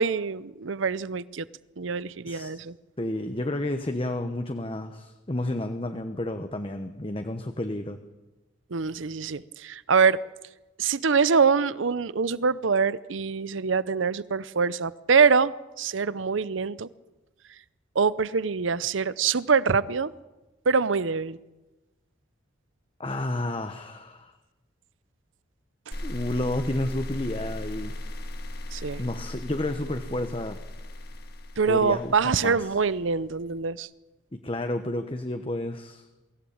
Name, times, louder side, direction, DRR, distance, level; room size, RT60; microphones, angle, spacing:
voice 1, 0.0-1.4 1.8-2.7 8.7-10.2 10.8-15.5 15.8-16.9 18.0-20.1 20.7-21.4 28.7-29.0 31.6-33.9, right 5 dB, 80° right, 0.7 m, -24 dB
voice 2, 2.3-2.6 3.0-8.0 23.0-24.4 26.0-28.0 29.0-30.6 31.6-32.7 34.3-36.0, left 1 dB, 30° left, 1.0 m, -31 dB
sound 1, 25.9-33.0, left 1 dB, 50° left, 1.9 m, -37 dB
24.0 x 15.5 x 8.8 m
head